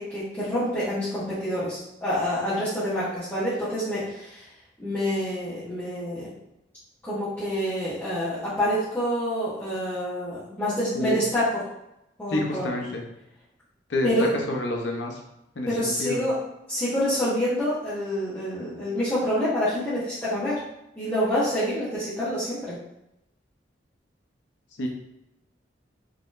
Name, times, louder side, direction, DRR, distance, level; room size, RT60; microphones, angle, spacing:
voice 1, 0.0-4.5 4.8-6.3 7.0-11.5 12.2-12.7 14.0-14.3 15.6-16.4 16.7-20.6 21.0-22.8, equal, 10° left, -14 dB, 1.0 m, -27 dB
voice 2, 12.3-13.0 13.9-15.2 15.6-16.2 24.8-24.9, left 1 dB, 70° left, 1 dB, 0.7 m, -28 dB
3.9 x 2.9 x 2.5 m, 0.85 s
head